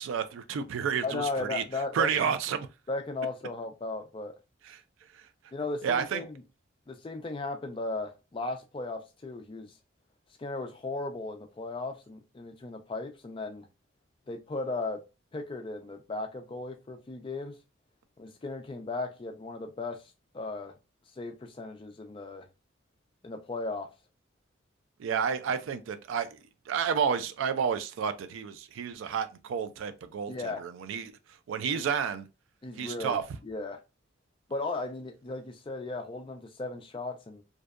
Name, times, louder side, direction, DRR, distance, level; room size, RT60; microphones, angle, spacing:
voice 1, 0.0-1.6 1.9-2.7 4.7-4.8 5.1-5.2 5.8-6.2 25.0-26.4 26.7-31.2 31.5-32.2 32.8-33.2, right 7 dB, 75° right, 0.3 m, -30 dB
voice 2, 1.0-2.3 2.9-4.3 5.5-6.4 6.9-9.7 10.4-13.7 14.3-15.0 15.3-17.6 18.2-20.0 20.3-20.7 21.2-22.5 23.2-23.9 30.3-30.6 31.7-31.9 32.6-33.2 33.4-33.8 34.5-37.4, left 3 dB, 25° left, 0.3 m, -36 dB
2.6 x 2.1 x 2.3 m
head